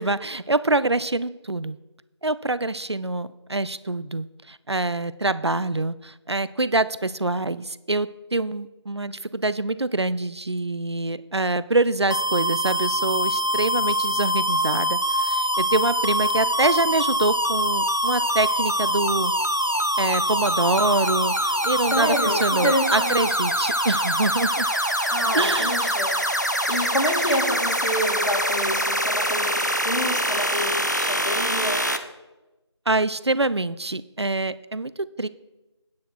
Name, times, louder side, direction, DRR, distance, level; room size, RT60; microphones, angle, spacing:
voice 1, 0.0-1.8 2.2-19.3 20.0-24.7 25.3-25.8 32.9-35.3, right 2 dB, 65° right, 16 dB, 0.5 m, -25 dB
sound 1, 12.1-32.0, equal, 40° left, 0.6 m, -24 dB
voice 2, 21.9-23.3 25.1-26.2 26.7-31.9, equal, 80° left, 0 dB, 2.7 m, -28 dB
9.4 x 8.1 x 4.6 m, 1.0 s
figure-of-eight pair, 175°, 15 cm